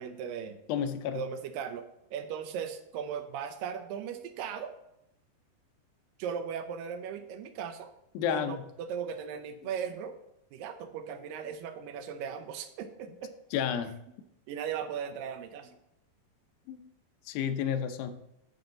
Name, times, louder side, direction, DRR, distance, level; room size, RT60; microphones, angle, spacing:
voice 1, 0.0-0.6 1.1-4.7 6.2-7.9 8.3-10.2 10.5-13.3 14.5-15.8, right 7 dB, 80° right, 9 dB, 2.3 m, -38 dB
voice 2, 0.7-1.2 8.2-8.6 13.5-14.0 16.7-16.8 17.3-18.2, left 8 dB, 85° left, 8 dB, 2.5 m, -31 dB
9.2 x 7.3 x 3.8 m, 0.83 s
omnidirectional pair, 4.2 m